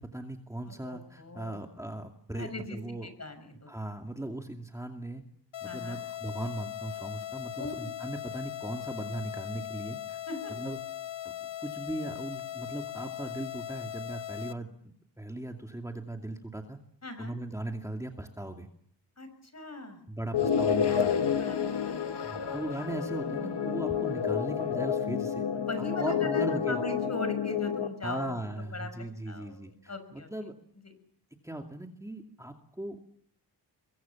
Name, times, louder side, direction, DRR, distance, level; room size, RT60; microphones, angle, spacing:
voice 1, 0.0-3.1 3.7-5.2 5.6-10.2 10.6-10.8 11.4-16.8 17.2-18.7 20.1-21.2 22.2-25.5 25.8-26.8 28.0-30.5 31.4-33.0, right 1 dB, 5° right, 3 dB, 2.4 m, -38 dB
voice 2, 0.6-1.6 2.3-3.7 5.6-6.0 7.6-7.9 10.3-10.5 17.0-17.3 19.2-20.0 21.4-22.7 25.5-28.9 29.3-30.3, left 2 dB, 35° left, 9 dB, 6.3 m, -40 dB
sound 1, 5.5-14.5, left 12 dB, 85° left, 1.0 m, -39 dB
sound 2, 20.3-27.9, left 7 dB, 65° left, 2.0 m, -29 dB
25.5 x 23.0 x 7.1 m, 0.66 s
wide cardioid pair, 95°, 43 cm